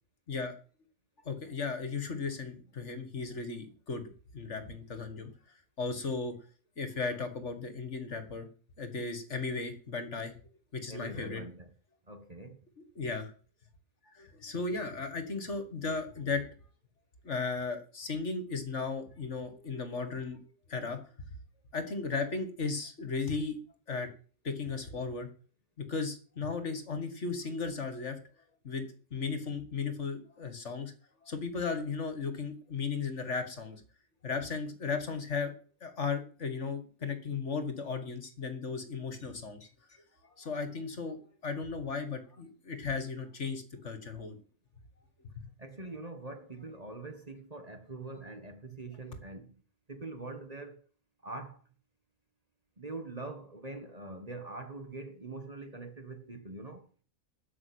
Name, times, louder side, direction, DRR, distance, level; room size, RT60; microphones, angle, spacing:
voice 1, 1.3-5.3 5.8-6.3 6.8-8.5 8.8-10.3 10.7-11.4 13.0-13.3 14.1-16.4 17.2-20.4 20.7-21.0 21.7-23.6 23.9-24.1 24.4-25.3 25.8-28.2 28.6-30.9 31.2-33.8 34.2-35.5 35.8-39.7 40.2-44.4 45.4-45.5, left 4 dB, 55° left, 2.0 m, -36 dB
voice 2, 10.9-11.7 12.1-12.6 45.6-49.6 49.9-50.9 51.2-51.6 52.8-56.9, right 2 dB, 30° right, 1.6 m, -43 dB
12.5 x 6.1 x 8.6 m
omnidirectional pair, 1.5 m